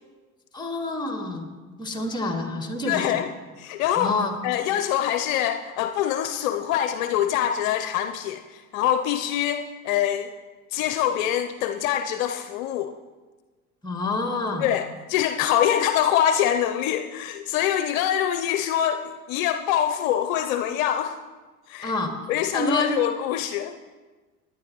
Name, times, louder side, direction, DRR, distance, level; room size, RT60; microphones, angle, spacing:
voice 1, 0.5-1.5 1.8-3.2 4.0-4.3 13.8-14.7 21.8-22.1 22.5-22.9, left 2 dB, 10° left, 3 dB, 2.0 m, -27 dB
voice 2, 2.9-3.3 3.6-4.1 4.4-10.3 10.7-12.9 14.6-21.2 21.7-21.9 22.3-23.8, left 10 dB, 60° left, 8 dB, 0.7 m, -24 dB
18.5 x 10.5 x 3.0 m, 1.3 s
hypercardioid pair, 80°, 46 cm